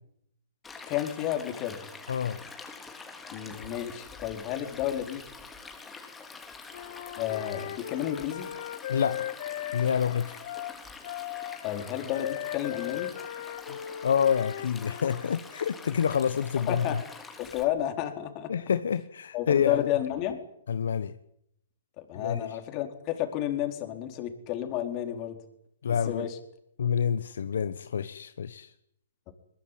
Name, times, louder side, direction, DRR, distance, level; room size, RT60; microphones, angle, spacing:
Stream, 0.6-17.6, left 4 dB, 10° left, 3.5 m, -46 dB
voice 1, 0.9-1.8 3.3-5.2 7.2-8.5 11.6-13.1 16.6-17.0 17.4-18.5 19.3-20.4 22.0-25.4 25.9-26.4 29.3-29.4, left 12 dB, 30° left, 4.3 m, -31 dB
voice 2, 2.1-2.4 8.9-9.3 9.7-10.4 13.7-13.8 14.0-17.0 18.5-19.9 20.7-21.1 22.1-22.4 25.8-26.3 26.8-28.7, left 7 dB, 70° left, 1.1 m, -27 dB
Wind instrument woodwind instrument, 6.7-15.2, left 12 dB, 55° left, 1.9 m, -38 dB
22.0 x 21.0 x 9.4 m
hypercardioid pair, 135°, 0 cm